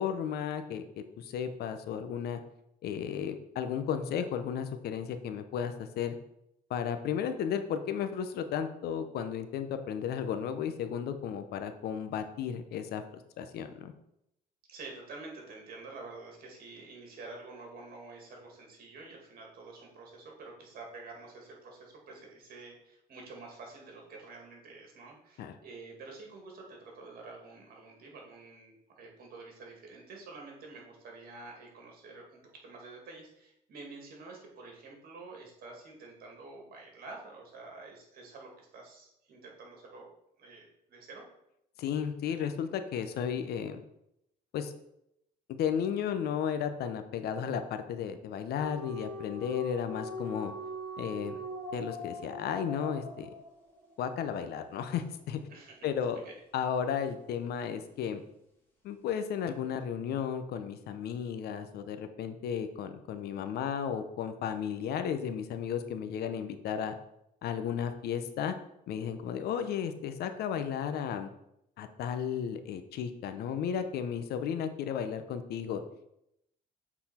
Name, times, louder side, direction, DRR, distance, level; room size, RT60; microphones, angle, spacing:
voice 1, 0.0-2.4 2.8-6.2 6.7-13.0 13.4-13.9 25.4-25.5 41.8-43.8 44.5-44.7 45.5-50.5 51.0-51.4 51.7-53.3 54.0-55.4 55.8-56.2 56.5-58.2 58.8-67.0 67.4-68.5 68.9-71.3 71.8-75.8, left 8 dB, 70° left, 9 dB, 0.8 m, -34 dB
voice 2, 14.7-40.1 40.4-41.3 55.5-56.4, right 3 dB, 60° right, 0 dB, 2.3 m, -48 dB
sound 1, 48.6-53.8, left 1 dB, 10° left, 2.3 m, -41 dB
7.9 x 4.2 x 4.3 m, 0.80 s
cardioid pair, 110°, 17 cm